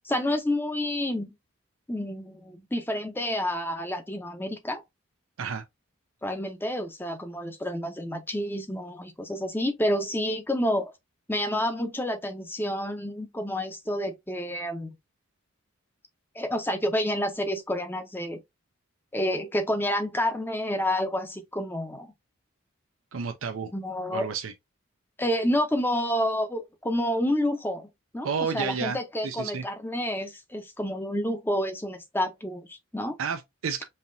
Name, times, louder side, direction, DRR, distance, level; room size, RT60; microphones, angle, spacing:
voice 1, 0.0-1.3 1.9-4.8 6.2-10.9 11.3-14.9 16.3-18.4 19.1-22.1 23.7-24.3 25.2-33.2, left 1 dB, 10° left, 0.7 m, -29 dB
voice 2, 23.1-23.7 24.1-24.5 28.2-29.0 29.2-29.6 33.2-33.8, right 6 dB, 80° right, 0.5 m, -31 dB
5.5 x 2.8 x 2.6 m
head